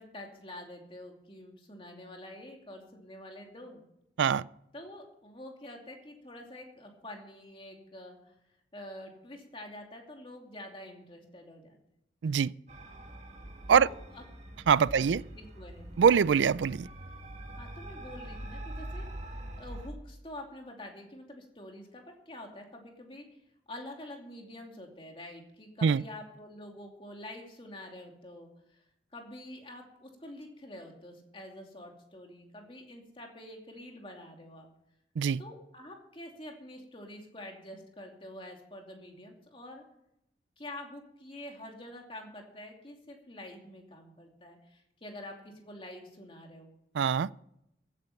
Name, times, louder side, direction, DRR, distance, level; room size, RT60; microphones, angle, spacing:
voice 1, 0.0-3.8 4.7-8.3 8.7-11.8 13.7-14.3 14.9-15.9 17.6-19.1 19.6-23.3 23.7-28.8 29.1-34.7 35.4-39.8 40.6-46.7, left 1 dB, 30° left, 2.6 m, -47 dB
sound 1, 12.7-19.9, right 1 dB, 40° right, 1.9 m, -44 dB
voice 2, 14.7-15.2 16.0-16.9 25.8-26.0 35.2-35.4 47.0-47.3, right 7 dB, 85° right, 0.4 m, -23 dB
15.5 x 9.8 x 5.8 m
head